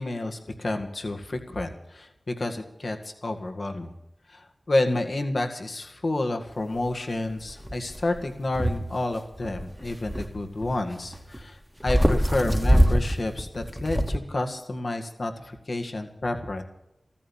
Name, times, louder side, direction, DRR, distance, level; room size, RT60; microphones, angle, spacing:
voice 1, 0.0-3.9 4.3-16.6, left 2 dB, 65° left, 5 dB, 1.9 m, -30 dB
sound 1, 6.9-7.0 7.5-8.8 9.1-11.4 11.8-14.2, equal, ahead, 1.6 m, -25 dB
14.5 x 14.0 x 7.3 m, 0.86 s
cardioid pair, 40°, 0 cm